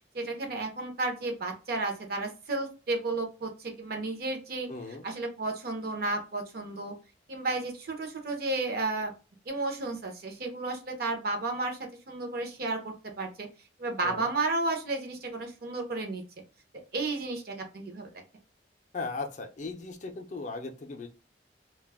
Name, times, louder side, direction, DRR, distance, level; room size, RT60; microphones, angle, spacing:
voice 1, 0.1-4.7 5.0-6.9 7.3-9.1 9.5-11.8 12.1-13.3 13.8-16.2 16.9-18.2, right 2 dB, 55° right, 3 dB, 0.6 m, -32 dB
voice 2, 4.7-5.1 14.0-14.3 18.9-21.1, left 3 dB, 40° left, 5 dB, 0.4 m, -37 dB
2.2 x 2.0 x 3.3 m, 0.33 s
head